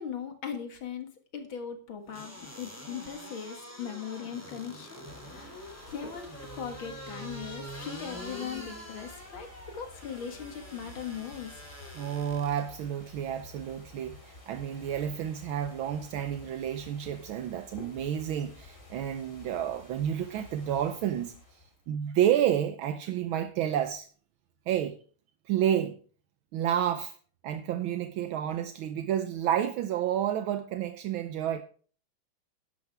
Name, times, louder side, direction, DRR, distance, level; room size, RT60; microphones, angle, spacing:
voice 1, 0.0-6.3 6.5-11.5, left 7 dB, 70° left, 2.5 m, -39 dB
sound 1, 2.1-12.6 13.1-13.2, equal, 5° left, 2.5 m, -45 dB
sound 2, 5.1-21.9, left 2 dB, 25° left, 3.7 m, -51 dB
voice 2, 11.9-21.3 21.9-24.1 24.7-25.0 25.5-26.0 26.5-27.2 27.4-31.6, right 10 dB, 75° right, 1.6 m, -30 dB
11.5 x 11.5 x 3.5 m
omnidirectional pair, 2.3 m